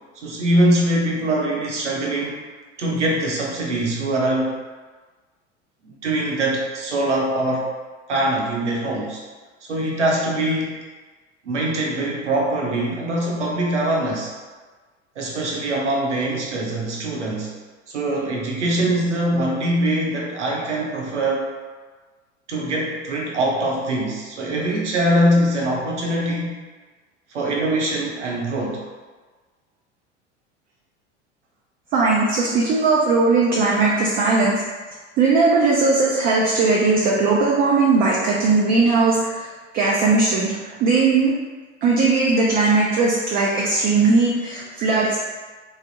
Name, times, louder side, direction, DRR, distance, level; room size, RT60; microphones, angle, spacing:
voice 1, 0.2-2.4 2.8-4.6 6.0-7.7 8.1-9.2 9.7-10.8 11.4-14.3 15.2-17.5 17.9-21.5 22.5-26.6 27.3-28.8, right 1 dB, 80° right, -2 dB, 0.7 m, -22 dB
voice 2, 31.9-34.6 35.2-39.5 39.7-41.3 41.8-45.2, right 3 dB, 25° right, -4 dB, 0.4 m, -18 dB
3.3 x 2.0 x 2.7 m, 1.3 s
figure-of-eight pair, 75°, 35 cm